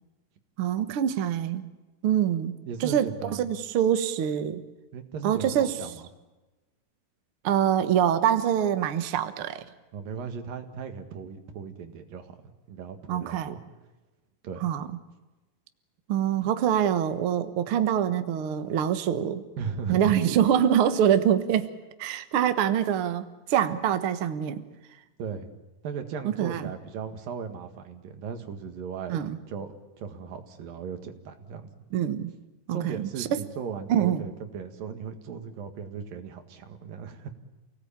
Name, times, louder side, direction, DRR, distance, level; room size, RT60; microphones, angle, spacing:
voice 1, 0.6-1.6 2.0-2.5 2.8-4.6 5.2-5.7 7.4-9.7 13.1-13.5 14.6-15.0 16.1-19.4 19.9-21.7 22.0-24.6 26.2-26.7 29.1-29.4 31.9-32.3 32.7-33.4 33.9-34.2, right 9 dB, 55° right, 9 dB, 1.6 m, -25 dB
voice 2, 2.7-3.5 4.9-6.1 9.9-13.6 14.4-14.7 19.6-20.2 25.2-25.5 25.8-29.2 29.5-31.7 32.7-37.3, right 6 dB, 85° right, 6 dB, 3.6 m, -37 dB
29.0 x 18.5 x 8.8 m, 1.1 s
omnidirectional pair, 3.9 m